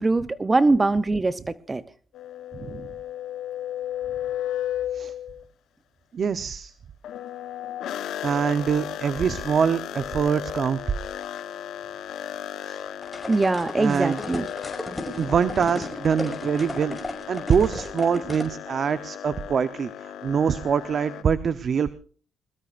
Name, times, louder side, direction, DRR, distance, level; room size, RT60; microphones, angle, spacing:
voice 1, 0.0-1.4 1.7-1.8 13.3-14.4, right 3 dB, 25° right, 0.7 m, -22 dB
sound 1, 2.1-5.4 7.0-21.2, left 10 dB, 75° left, 1.1 m, -35 dB
voice 2, 2.5-2.9 4.9-5.1 6.1-6.7 8.2-10.9 12.6-12.8 13.8-14.2 15.2-17.0 17.3-21.9, right 7 dB, 50° right, 0.8 m, -24 dB
sound 2, 13.0-18.5, left 2 dB, 15° left, 5.8 m, -35 dB
22.0 x 20.0 x 2.5 m
cardioid pair, 90°, 0 cm